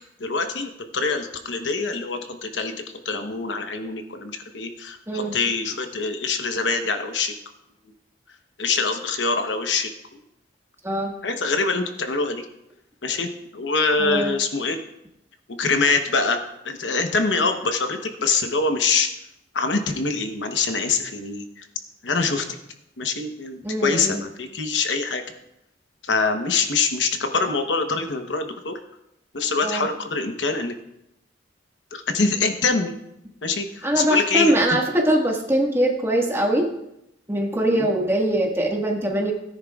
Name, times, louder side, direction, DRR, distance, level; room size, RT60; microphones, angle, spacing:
voice 1, 0.2-7.3 8.6-9.9 11.2-12.5 13.0-14.8 15.6-19.1 19.5-21.6 22.0-22.4 23.0-25.2 26.1-28.8 29.3-30.7 31.9-32.9 33.4-34.5 37.7-37.9, left 4 dB, 70° left, 6 dB, 1.0 m, -24 dB
voice 2, 5.1-5.4 10.8-11.1 14.0-14.3 23.6-24.2 29.6-29.9 33.8-36.7 37.3-39.3, right 1 dB, 15° right, 0 dB, 1.6 m, -22 dB
17.0 x 10.0 x 2.4 m, 0.84 s
head